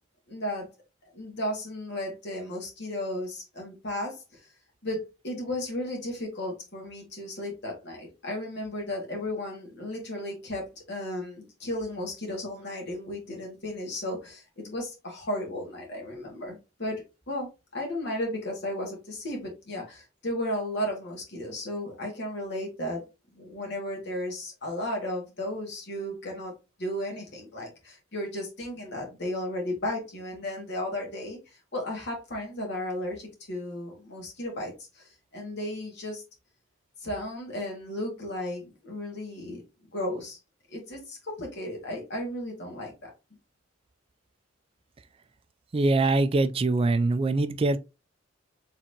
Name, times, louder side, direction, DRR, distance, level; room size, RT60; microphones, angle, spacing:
voice 1, 0.3-0.7 1.1-4.4 4.8-23.0 23.4-26.5 26.8-31.4 31.7-36.2 37.0-40.4 40.7-43.1, left 1 dB, 60° left, 2.1 m, -34 dB
voice 2, 45.7-47.8, right 2 dB, 30° right, 0.3 m, -23 dB
4.4 x 3.7 x 2.8 m
head